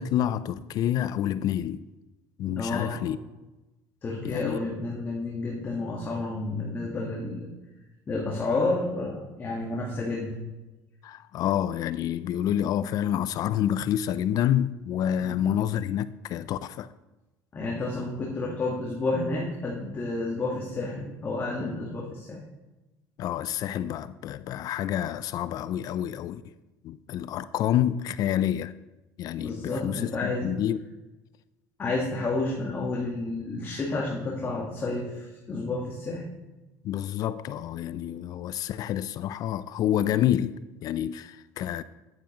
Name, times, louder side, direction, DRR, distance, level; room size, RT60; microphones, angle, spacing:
voice 1, 0.0-1.8 2.4-3.2 4.2-4.6 11.0-16.9 23.2-26.4 26.8-28.7 29.2-30.8 36.8-41.8, left 11 dB, 55° left, 0.4 m, -28 dB
voice 2, 2.6-3.1 4.0-7.5 8.1-10.4 15.2-15.4 17.5-22.4 29.4-30.5 31.8-36.3, left 2 dB, 30° left, 1.5 m, -30 dB
9.5 x 9.4 x 3.0 m
cardioid pair, 115°, 8 cm